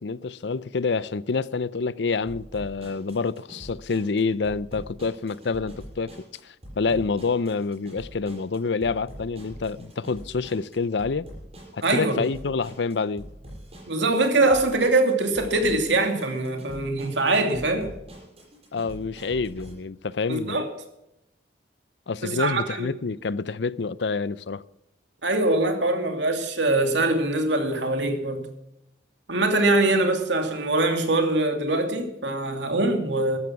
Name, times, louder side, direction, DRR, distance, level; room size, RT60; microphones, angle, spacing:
voice 1, 0.0-11.2 11.7-13.3 18.7-20.6 22.1-24.6, left 4 dB, 75° left, 0.6 m, -27 dB
sound 1, 2.3-19.7, equal, 35° right, 6.5 m, -44 dB
voice 2, 11.8-12.3 13.9-17.9 20.3-20.6 22.2-22.9 25.2-28.5 29.3-33.4, right 2 dB, 85° right, 2.6 m, -23 dB
14.0 x 12.0 x 6.0 m
head